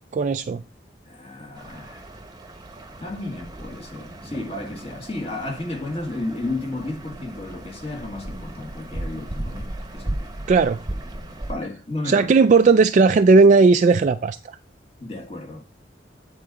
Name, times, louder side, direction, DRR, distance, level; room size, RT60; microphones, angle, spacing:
voice 1, 0.1-0.6 10.5-10.8 12.1-14.6, right 4 dB, 45° right, 0.3 m, -16 dB
voice 2, 1.0-2.1 3.0-10.5 11.5-12.3 15.0-15.6, left 2 dB, 35° left, 1.7 m, -33 dB
sound 1, 1.6-11.5, right 1 dB, 25° right, 0.9 m, -36 dB
9.4 x 4.0 x 4.8 m
head